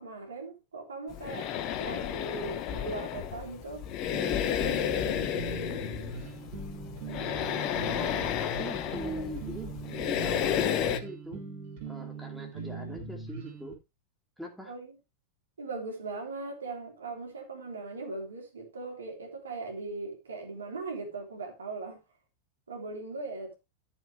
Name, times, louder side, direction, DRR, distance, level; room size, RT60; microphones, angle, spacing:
voice 1, 0.0-1.5 1.8-3.9 14.7-14.9 15.6-22.0 22.7-23.6, right 3 dB, 70° right, 3.3 m, -39 dB
sound 1, 1.1-11.0, left 10 dB, 40° left, 1.2 m, -32 dB
sound 2, 4.1-13.7, right 4 dB, 50° right, 3.5 m, -41 dB
voice 2, 8.0-11.4 11.8-13.8 14.4-14.7, right 1 dB, ahead, 2.8 m, -42 dB
13.5 x 7.2 x 3.2 m
figure-of-eight pair, 90°, 0 cm